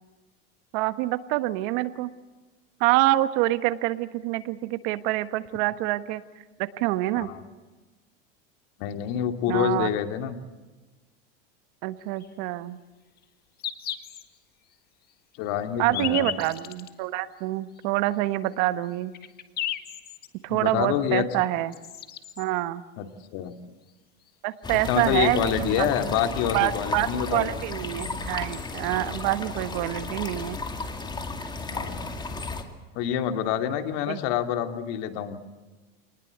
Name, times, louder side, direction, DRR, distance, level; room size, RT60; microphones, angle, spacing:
voice 1, 0.7-2.1 2.8-6.2 6.6-7.3 9.5-9.9 11.8-12.8 15.8-19.1 20.4-21.7 22.4-22.8 24.4-25.9 26.5-30.6 34.1-34.2, right 16 dB, 60° right, 12 dB, 1.4 m, -26 dB
voice 2, 8.8-10.3 15.4-16.3 20.5-21.2 23.0-23.5 24.9-27.6 31.7-32.1 32.9-35.4, left 9 dB, 55° left, 7 dB, 2.4 m, -27 dB
sound 1, 12.2-12.3 13.2-13.3 13.6-14.2 14.7-14.8 15.6-16.9 17.8-17.9 18.5-18.6 18.9-20.3 21.4-21.5 21.7-22.4 23.9-24.0 24.2-24.3 25.0-25.1, left 11 dB, 30° left, 1.7 m, -34 dB
sound 2, 24.6-32.6, left 3 dB, 15° left, 2.3 m, -34 dB
27.0 x 20.0 x 8.1 m, 1.2 s
supercardioid pair, 140°, 30 cm